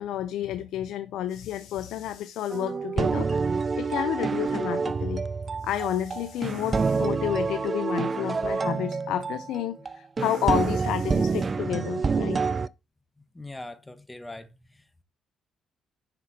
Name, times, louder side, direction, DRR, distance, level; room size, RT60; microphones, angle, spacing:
voice 1, 0.0-5.2 5.6-12.4, left 12 dB, 85° left, 0.5 m, -30 dB
sound 1, 2.5-12.7, right 4 dB, 35° right, 0.4 m, -27 dB
voice 2, 13.3-15.0, left 2 dB, 15° left, 1.1 m, -42 dB
7.5 x 6.0 x 4.1 m
cardioid pair, 90°, 0 cm